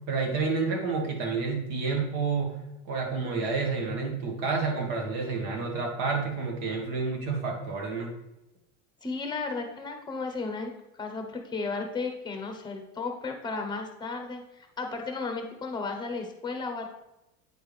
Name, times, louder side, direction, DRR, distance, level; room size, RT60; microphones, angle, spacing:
voice 1, 0.1-2.6 2.9-8.1, right 4 dB, 60° right, 1 dB, 2.0 m, -29 dB
voice 2, 9.0-10.7 11.0-16.9, left 4 dB, 10° left, 4 dB, 1.0 m, -34 dB
9.0 x 4.6 x 3.4 m, 0.92 s
supercardioid pair, 145°, 37 cm